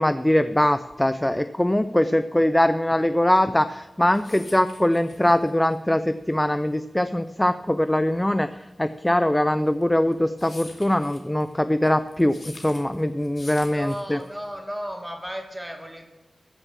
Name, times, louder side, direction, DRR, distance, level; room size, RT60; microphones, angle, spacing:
voice 1, 0.0-14.2, left 1 dB, 10° left, 12 dB, 0.4 m, -22 dB
sound 1, 3.8-14.6, left 2 dB, 50° left, 2.3 m, -46 dB
voice 2, 13.7-16.0, equal, 10° right, 4 dB, 2.1 m, -34 dB
14.5 x 6.7 x 7.2 m, 1.1 s
wide cardioid pair, 120°, 0 cm